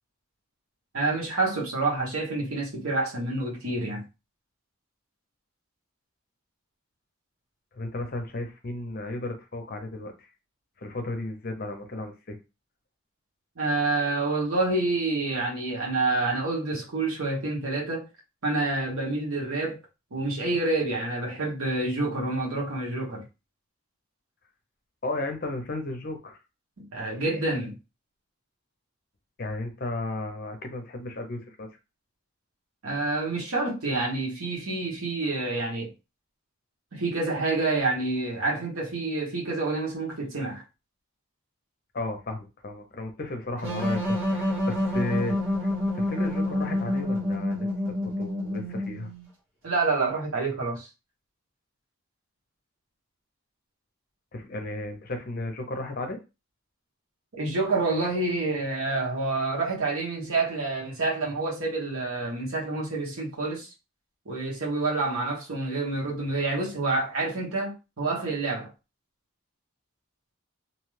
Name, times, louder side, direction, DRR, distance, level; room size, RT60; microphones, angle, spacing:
voice 1, 0.9-4.0 13.6-18.1 18.4-19.8 20.1-23.2 26.8-27.8 32.8-35.9 36.9-40.6 49.6-50.9 57.4-63.7 64.2-68.7, right 2 dB, 90° right, 1.2 m, -28 dB
voice 2, 7.7-10.3 10.8-12.4 25.0-26.4 29.4-31.7 41.9-47.7 48.0-49.1 54.3-56.2, left 2 dB, 45° left, 0.6 m, -34 dB
sound 1, 43.6-49.3, left 1 dB, 65° right, 1.3 m, -28 dB
2.8 x 2.3 x 3.2 m
head